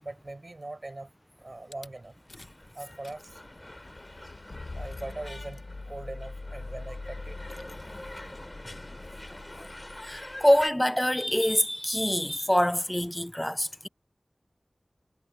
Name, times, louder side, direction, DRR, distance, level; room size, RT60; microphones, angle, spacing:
voice 1, 0.0-1.1 1.4-2.1 2.8-3.4 4.7-7.4 8.2-8.4, right 2 dB, 50° right, 5.3 m, -41 dB
Rattle / Car / Engine starting, 1.7-1.9 2.3-2.6 2.9-10.6, left 3 dB, 65° left, 0.9 m, -43 dB
sound 1, 2.3-10.7, left 1 dB, 30° left, 3.7 m, -46 dB
voice 2, 10.1-13.9, equal, 10° left, 0.3 m, -25 dB
wide cardioid pair, 50°, 0 cm